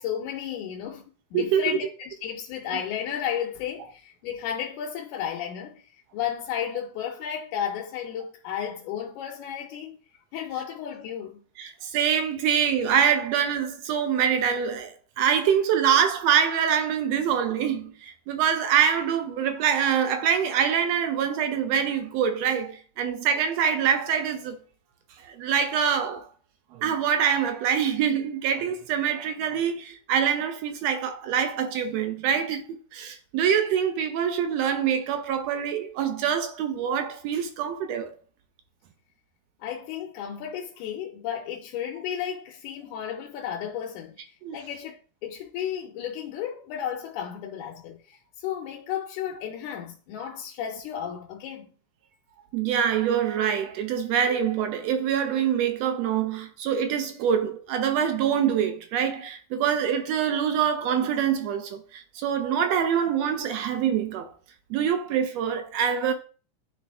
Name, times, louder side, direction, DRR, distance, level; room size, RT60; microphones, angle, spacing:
voice 1, 0.0-10.0 10.3-11.4 39.6-51.7, left 9 dB, 80° left, 2.1 m, -33 dB
voice 2, 1.3-1.8 11.6-24.6 25.2-26.3 26.7-38.1 44.4-44.6 52.5-64.3 64.7-66.1, right 8 dB, 75° right, 1.6 m, -25 dB
10.0 x 3.4 x 3.4 m
omnidirectional pair, 3.5 m